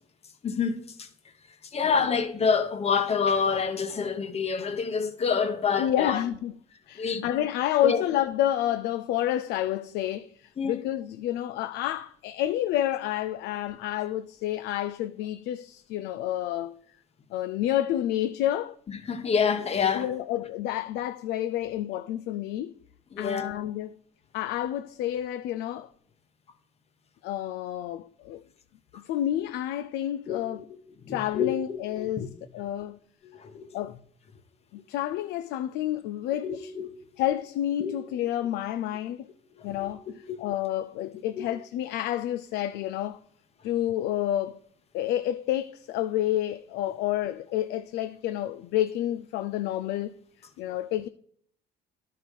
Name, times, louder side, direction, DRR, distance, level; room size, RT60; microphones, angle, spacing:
voice 1, 0.4-1.1 1.7-6.2 7.0-7.2 7.8-8.0 10.6-10.8 19.1-20.1 23.1-23.6 30.3-30.6 31.1-32.3 33.2-33.7 36.4-36.9 37.8-37.9 39.6-39.9 40.3-40.4 41.4-41.5, left 6 dB, 40° left, 1.0 m, -27 dB
voice 2, 5.8-6.5 6.9-16.8 17.3-18.8 19.9-22.7 23.2-24.0 24.3-25.9 27.2-28.4 28.9-30.6 31.1-33.0 33.7-34.0 34.7-36.7 37.2-39.3 39.6-43.2 43.6-44.6 44.9-50.2 50.6-51.1, left 12 dB, 80° left, 0.4 m, -29 dB
11.5 x 4.7 x 5.2 m
cardioid pair, 110°, 17 cm